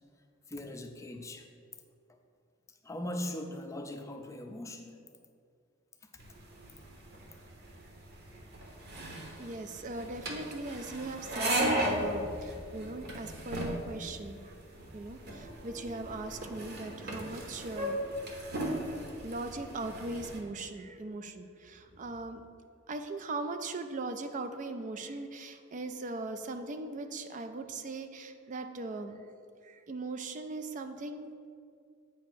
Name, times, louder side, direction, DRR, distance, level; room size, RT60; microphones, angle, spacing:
voice 1, 0.5-1.5 2.8-5.1 6.0-6.2, left 1 dB, 15° left, 4 dB, 0.5 m, -40 dB
sound 1, 6.2-20.4, right 1 dB, 55° right, 0.9 m, -36 dB
voice 2, 9.4-14.5 14.9-18.0 19.2-22.4 22.9-29.2 29.6-31.3, right 2 dB, 40° right, 8 dB, 0.4 m, -39 dB
sound 2, 15.3-21.1, right 1 dB, 85° right, 1.7 m, -54 dB
8.1 x 2.8 x 6.1 m, 2.2 s
head